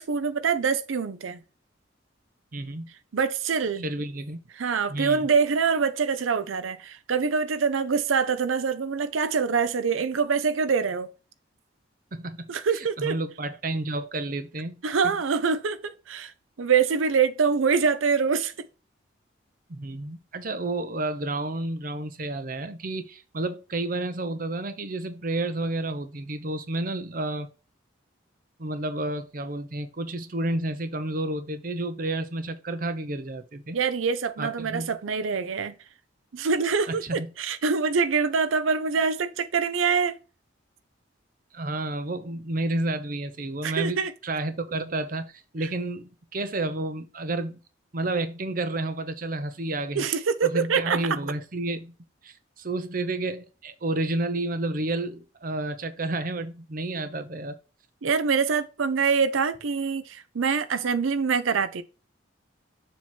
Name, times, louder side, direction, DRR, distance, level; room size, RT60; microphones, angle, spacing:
voice 1, 0.0-1.4 3.1-3.9 4.5-11.1 12.5-13.2 14.8-16.3 16.6-18.5 33.7-35.7 36.3-40.2 43.6-44.1 50.0-51.2 58.0-61.8, right 5 dB, 85° right, 0.6 m, -25 dB
voice 2, 2.5-2.9 3.8-4.4 4.9-5.3 12.1-14.8 19.7-27.5 28.6-33.8 34.4-34.9 36.9-37.3 41.5-44.0 44.2-47.6 47.9-50.0 50.4-51.9 52.2-57.5, right 2 dB, 45° right, 0.7 m, -30 dB
7.2 x 3.0 x 5.9 m
head